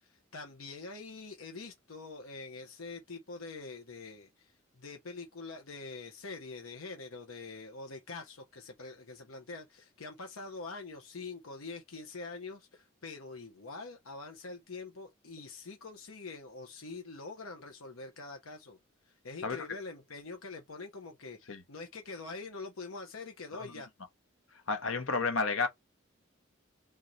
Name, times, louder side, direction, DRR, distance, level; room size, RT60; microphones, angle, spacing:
voice 1, 0.0-18.8 19.1-23.9, left 3 dB, 90° left, 1.0 m, -45 dB
voice 2, 19.4-19.8 21.5-21.6 23.5-23.7 24.5-25.7, left 4 dB, 70° left, 1.2 m, -32 dB
3.7 x 3.1 x 4.0 m
head